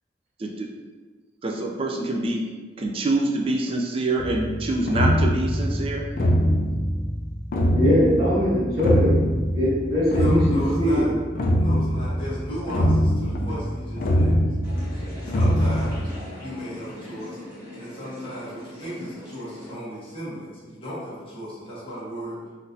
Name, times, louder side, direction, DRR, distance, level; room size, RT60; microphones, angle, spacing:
voice 1, 1.4-2.4 2.8-6.1, right 2 dB, 30° right, 1 dB, 0.4 m, -25 dB
sound 1, 4.2-16.0, equal, 50° left, 0.4 m, -23 dB
voice 2, 7.7-9.1 9.5-11.0, equal, 60° right, -13 dB, 1.1 m, -21 dB
voice 3, 10.1-11.1 11.6-14.4 15.2-16.1 16.4-22.4, equal, 30° left, -9 dB, 1.0 m, -35 dB
sound 2, 14.6-19.7, left 1 dB, 15° right, 1.2 m, -41 dB
3.8 x 2.6 x 2.6 m, 1.4 s
head